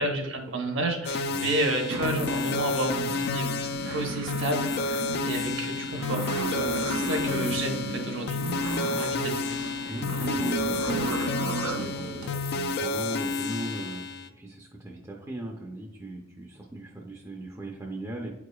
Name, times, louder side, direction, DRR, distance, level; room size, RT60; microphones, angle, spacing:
voice 1, 0.0-3.5 3.9-4.7 5.2-8.4 8.6-9.5, right 1 dB, 65° right, 3 dB, 1.0 m, -31 dB
sound 1, 1.0-14.3, left 4 dB, 50° left, 0.3 m, -30 dB
sound 2, 1.9-12.3, right 3 dB, 85° right, 0.5 m, -34 dB
voice 2, 9.9-14.0 14.3-18.3, right 2 dB, 15° right, 0 dB, 0.5 m, -38 dB
8.9 x 4.8 x 2.3 m, 1.1 s
head